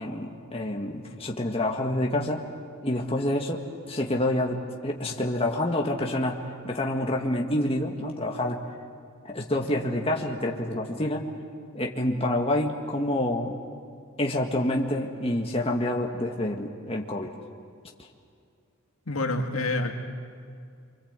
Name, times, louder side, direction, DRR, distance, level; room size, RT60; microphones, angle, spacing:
voice 1, 0.0-2.5 2.8-6.4 6.6-8.6 9.3-11.3 11.7-13.6 14.2-17.3, left 1 dB, 25° left, 0 dB, 1.7 m, -27 dB
voice 2, 19.1-19.9, left 2 dB, 80° left, 3 dB, 2.0 m, -27 dB
28.0 x 25.0 x 8.2 m, 2.4 s
head